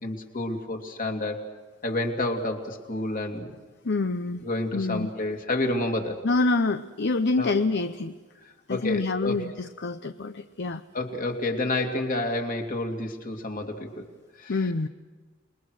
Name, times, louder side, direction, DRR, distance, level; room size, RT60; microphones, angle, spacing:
voice 1, 0.0-1.5 1.8-3.5 4.4-6.2 7.4-7.5 8.7-9.4 10.9-14.0 14.4-14.5, left 2 dB, 45° left, 3 dB, 2.6 m, -29 dB
voice 2, 3.8-4.5 4.7-5.1 6.2-8.1 8.7-10.8 14.5-14.9, left 3 dB, 60° left, 10 dB, 0.7 m, -26 dB
28.5 x 21.5 x 6.4 m, 1.3 s
head